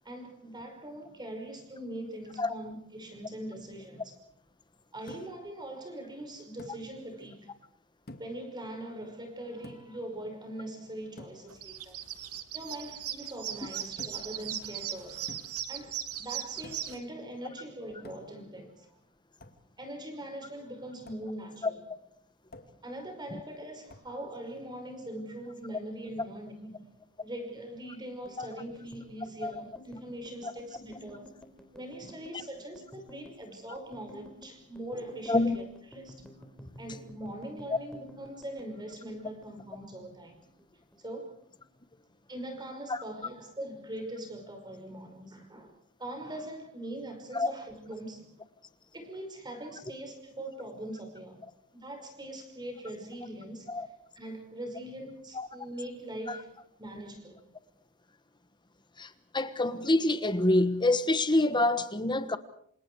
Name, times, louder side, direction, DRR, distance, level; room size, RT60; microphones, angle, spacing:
voice 1, 0.1-4.2 4.9-7.5 8.2-12.0 12.5-15.3 15.7-18.9 19.8-21.8 22.8-26.9 27.2-31.3 31.7-35.6 35.9-36.2 36.8-40.4 41.0-41.4 42.3-45.7 46.0-48.3 48.9-51.4 51.7-53.9 54.2-56.5 56.8-57.4, right 1 dB, 20° right, 5.5 m, -42 dB
sound 1, 5.1-5.5 6.6-6.9 8.1-8.5 9.6-10.0 11.2-11.5 14.0-14.4 15.3-15.7 16.6-17.0 18.1-18.5 19.4-19.7 21.1-21.3 22.5-22.9 23.9-24.2, left 1 dB, 45° left, 2.3 m, -49 dB
sound 2, 11.5-17.0, right 11 dB, 80° right, 2.0 m, -38 dB
sound 3, 28.3-40.7 40.9-42.0 42.3-42.6 42.9-43.6, left 1 dB, 5° left, 3.9 m, -53 dB
voice 2, 59.0-62.4, left 2 dB, 20° left, 1.3 m, -26 dB
28.0 x 27.0 x 4.8 m
head